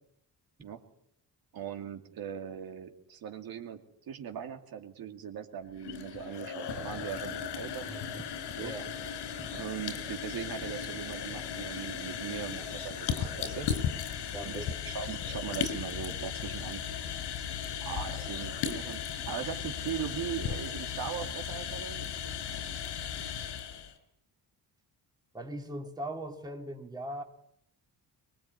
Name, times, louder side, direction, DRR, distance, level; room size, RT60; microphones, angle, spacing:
voice 1, 1.5-3.8 4.1-7.9 8.6-8.7 9.5-13.7 14.4-16.8 17.8-22.1, right 8 dB, 60° right, 4 dB, 2.5 m, -39 dB
sound 1, 5.7-23.9, left 8 dB, 90° left, 4.6 m, -36 dB
voice 2, 7.9-8.3 8.6-8.9 9.2-9.6 14.3-14.7 18.2-18.3 23.0-23.2 25.3-27.2, right 1 dB, 10° right, 3 dB, 2.3 m, -41 dB
24.0 x 21.5 x 9.6 m, 0.75 s
cardioid pair, 150°, 40 cm